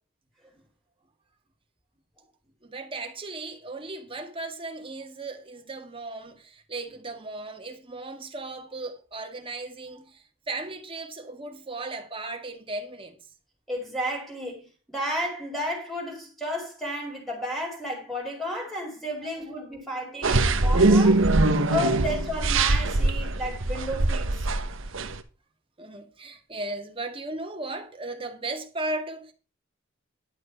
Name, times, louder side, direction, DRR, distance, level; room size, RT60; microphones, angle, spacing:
voice 1, 2.6-13.2 19.4-20.2 20.8-21.0 21.3-21.4 24.8-24.9 25.8-29.3, right 2 dB, 25° right, 1.9 m, -36 dB
voice 2, 13.7-21.2 21.7-24.5, equal, ahead, 4.3 m, -32 dB
sound 1, 20.2-25.2, right 2 dB, 65° right, 1.0 m, -22 dB
11.0 x 6.6 x 5.8 m
head